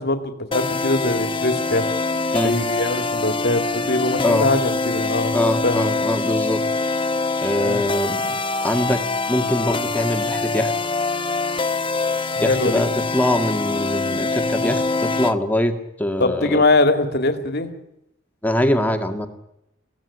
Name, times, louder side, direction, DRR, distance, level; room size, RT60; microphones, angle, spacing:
voice 1, 0.0-1.8 2.4-5.4 5.6-6.0 7.6-7.8 12.4-12.8 16.2-17.7, left 2 dB, 55° left, 7 dB, 2.4 m, -22 dB
sound 1, 0.5-15.3, left 3 dB, 25° left, 0.9 m, -24 dB
voice 2, 5.3-6.6 7.4-8.4 8.6-10.7 12.4-16.6 18.4-19.3, left 1 dB, 10° left, 5 dB, 2.1 m, -23 dB
23.0 x 17.0 x 10.0 m, 0.85 s
head